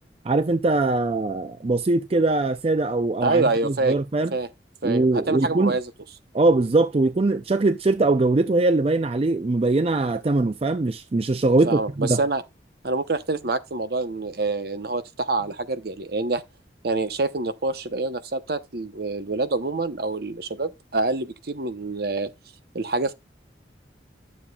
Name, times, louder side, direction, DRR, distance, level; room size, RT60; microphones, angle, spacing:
voice 1, 0.2-4.3 4.8-5.8 6.3-12.2, right 2 dB, 35° right, 0.4 m, -21 dB
voice 2, 3.2-3.9 4.3-4.5 4.8-5.9 11.6-12.4 12.8-16.4 16.8-22.3 22.7-23.1, right 3 dB, 55° right, 0.9 m, -26 dB
11.5 x 7.2 x 2.3 m
head